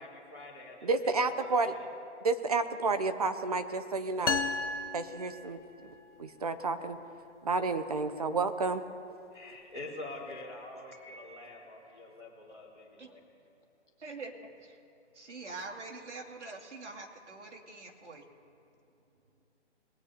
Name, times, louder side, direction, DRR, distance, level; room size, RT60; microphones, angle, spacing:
voice 1, 0.0-1.9 9.3-13.2, left 2 dB, 5° left, -12 dB, 0.6 m, -46 dB
voice 2, 0.8-1.7 2.2-4.4 4.9-5.6 6.2-7.0 7.4-8.8, right 3 dB, 35° right, 10 dB, 0.7 m, -30 dB
sound 1, 4.3-6.0, left 4 dB, 80° left, 0.8 m, -34 dB
Piano, 10.9-12.0, right 1 dB, 60° left, 2.7 m, -55 dB
voice 3, 14.0-14.3 14.6-14.8 15.1-18.2, right 3 dB, 75° right, 1 dB, 2.3 m, -44 dB
21.5 x 8.9 x 4.2 m, 2.8 s
hypercardioid pair, 165°, 35 cm